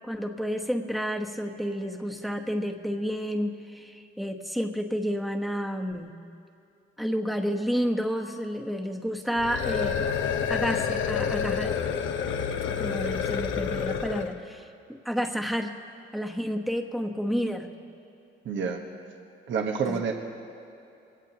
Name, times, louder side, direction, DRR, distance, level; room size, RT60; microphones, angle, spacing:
voice 1, 0.0-6.1 7.0-10.1 10.5-11.7 12.8-15.7 16.1-17.7 19.9-20.0, equal, ahead, 3 dB, 1.2 m, -30 dB
sound 1, 9.4-14.4, left 7 dB, 75° left, 0.9 m, -28 dB
voice 2, 18.4-18.8 19.5-20.1, right 6 dB, 70° right, 2 dB, 1.3 m, -28 dB
23.5 x 17.0 x 2.9 m, 2.7 s
cardioid pair, 90°, 20 cm